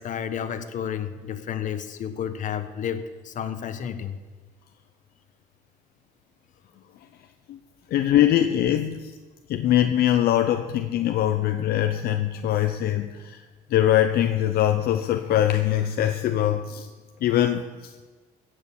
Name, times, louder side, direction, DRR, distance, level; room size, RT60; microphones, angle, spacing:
voice 1, 0.0-4.2, left 8 dB, 50° left, 10 dB, 1.1 m, -31 dB
voice 2, 7.9-9.1 9.5-13.4 13.7-16.9 17.2-17.6, left 12 dB, 65° left, 7 dB, 0.7 m, -22 dB
15.5 x 6.6 x 7.2 m, 1.4 s
cardioid pair, 110°, 17 cm